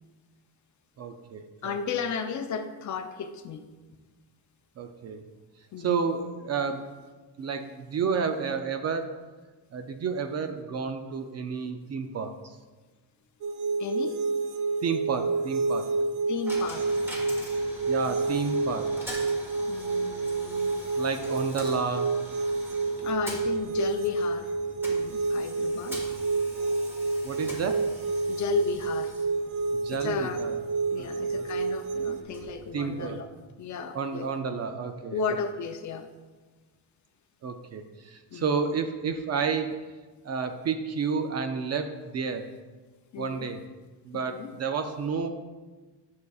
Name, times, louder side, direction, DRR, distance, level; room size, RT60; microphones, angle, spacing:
voice 1, 1.0-1.8 4.8-5.2 5.8-6.9 7.4-9.2 9.7-12.6 14.8-15.9 17.9-18.9 21.0-22.1 27.2-27.9 29.7-30.5 31.0-31.5 32.7-33.2 33.9-35.4 37.4-39.8 40.2-42.5 43.2-43.6 44.1-45.3, right 5 dB, 40° right, 7 dB, 0.4 m, -31 dB
voice 2, 1.6-3.7 5.7-6.0 13.8-14.2 16.3-16.9 18.1-18.2 19.7-20.7 23.0-24.5 24.9-26.0 27.4-27.6 28.3-29.1 29.9-30.4 30.9-33.3 33.6-34.3 35.1-36.1 38.3-38.6 43.1-43.5 44.1-44.6, left 5 dB, 45° left, 7 dB, 0.5 m, -34 dB
sound 1, 13.4-32.2, right 3 dB, 85° right, 0.9 m, -29 dB
Coin (dropping), 16.5-33.4, equal, 5° right, 1.4 m, -44 dB
11.0 x 6.6 x 2.3 m, 1.3 s
cardioid pair, 150°, 43 cm